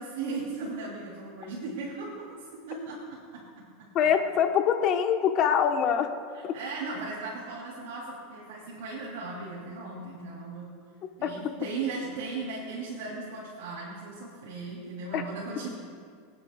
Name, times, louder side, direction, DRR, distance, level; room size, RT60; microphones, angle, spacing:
voice 1, 0.0-2.3 2.7-3.6 6.3-10.7 11.2-15.7, right 3 dB, 80° right, -5 dB, 2.9 m, -37 dB
voice 2, 3.9-6.1 11.2-11.3 15.1-15.2, left 8 dB, 40° left, 6 dB, 1.0 m, -24 dB
27.5 x 9.5 x 2.3 m, 2.1 s
supercardioid pair, 135°, 0 cm